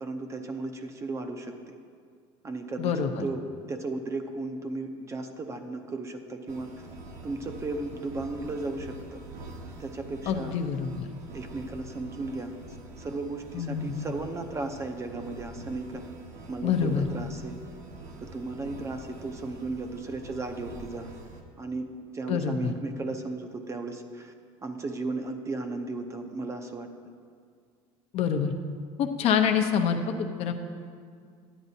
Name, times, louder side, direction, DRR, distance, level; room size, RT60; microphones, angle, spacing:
voice 1, 0.0-1.7 2.4-2.9 3.2-6.7 7.2-9.2 9.8-10.5 11.3-12.6 13.0-16.0 16.5-17.6 18.2-21.1 21.6-24.3 24.6-26.9, right 3 dB, 20° right, 6 dB, 0.6 m, -35 dB
voice 2, 2.8-3.2 10.3-11.1 13.5-14.1 16.6-17.1 22.3-22.7 28.1-28.5 29.0-30.5, left 7 dB, 55° left, 5 dB, 0.7 m, -26 dB
sound 1, 6.5-21.4, right 2 dB, 80° right, 1.1 m, -45 dB
11.0 x 8.9 x 2.7 m, 2.1 s
cardioid pair, 130°, 13 cm